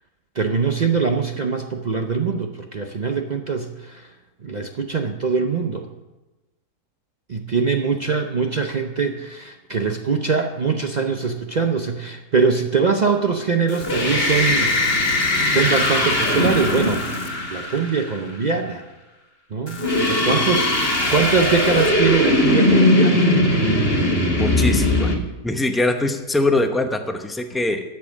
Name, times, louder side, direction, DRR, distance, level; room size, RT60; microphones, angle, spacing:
voice 1, 0.4-4.1 4.4-5.9 7.3-14.8 15.1-17.0 17.5-18.9 19.5-23.3, right 5 dB, 65° right, 4 dB, 0.4 m, -22 dB
sound 1, 13.7-18.2 19.7-25.2, left 1 dB, 40° left, 1.8 m, -19 dB
voice 2, 24.4-25.1 25.4-27.8, left 2 dB, ahead, 5 dB, 0.4 m, -22 dB
13.0 x 7.0 x 7.2 m, 1.1 s
omnidirectional pair, 1.7 m